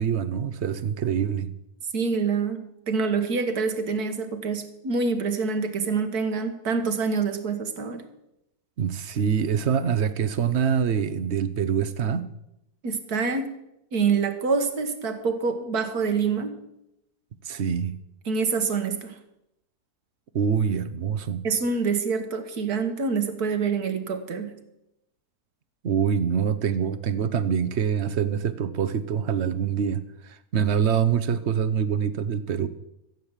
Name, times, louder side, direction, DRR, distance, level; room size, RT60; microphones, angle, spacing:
voice 1, 0.0-1.5 8.8-12.3 17.4-18.0 20.3-21.4 25.8-32.7, right 7 dB, 50° right, 14 dB, 0.9 m, -25 dB
voice 2, 1.9-8.1 12.8-13.5 13.9-16.6 18.2-19.2 21.4-24.5, right 5 dB, 70° right, 8 dB, 1.8 m, -26 dB
14.5 x 8.4 x 7.3 m, 0.85 s
omnidirectional pair, 1.7 m